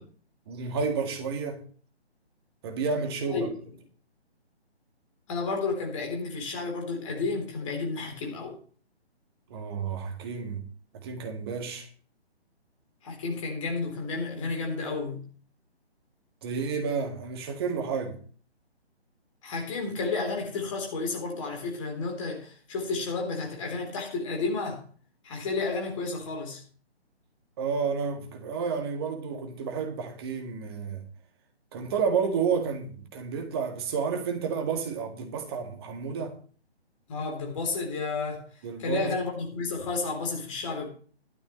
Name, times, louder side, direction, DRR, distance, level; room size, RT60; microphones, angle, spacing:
voice 1, 0.5-1.6 2.6-3.5 9.5-10.6 10.9-11.9 16.4-18.2 27.6-31.0 31.7-36.4 38.6-39.1, right 5 dB, 25° right, 1.9 m, -30 dB
voice 2, 5.3-8.6 13.0-15.2 19.4-24.8 25.2-26.6 37.1-38.4 38.8-40.9, left 3 dB, 30° left, 3.6 m, -31 dB
15.0 x 12.5 x 3.1 m
figure-of-eight pair, 140°, 33 cm